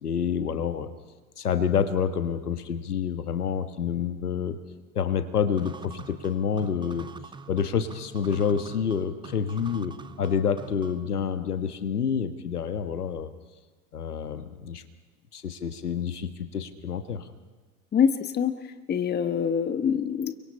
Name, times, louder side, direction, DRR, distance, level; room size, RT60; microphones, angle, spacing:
voice 1, 0.0-0.9 1.4-4.6 4.9-7.1 7.5-13.3 13.9-14.8 15.3-17.3, left 7 dB, 80° left, 9 dB, 1.5 m, -28 dB
sound 1, 5.6-11.1, right 4 dB, 10° right, 0.9 m, -45 dB
voice 2, 17.9-20.3, left 7 dB, 20° left, 10 dB, 1.3 m, -25 dB
29.0 x 24.0 x 4.4 m, 1.3 s
figure-of-eight pair, 85°, 45 cm